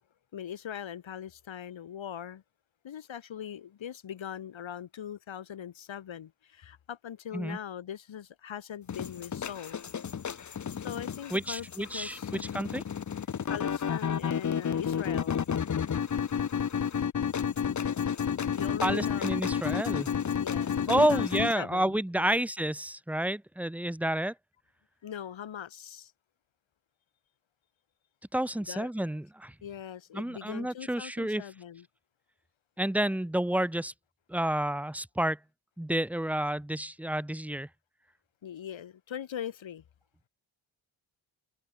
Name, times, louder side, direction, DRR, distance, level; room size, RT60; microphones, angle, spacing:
voice 1, 0.3-2.4 2.8-9.8 10.7-12.5 13.5-15.4 18.5-19.4 20.4-22.4 25.0-26.1 28.6-28.9 29.6-31.9 38.4-39.8, left 9 dB, 70° left, 5.5 m, -41 dB
sound 1, 8.9-21.5, left 7 dB, 35° left, 1.1 m, -31 dB
voice 2, 11.3-12.8 18.8-20.1 20.9-24.3 28.3-29.5 30.1-31.4 32.8-33.9 34.3-35.4 35.8-37.7, right 1 dB, 5° right, 1.2 m, -30 dB
wide cardioid pair, 175°, 47 cm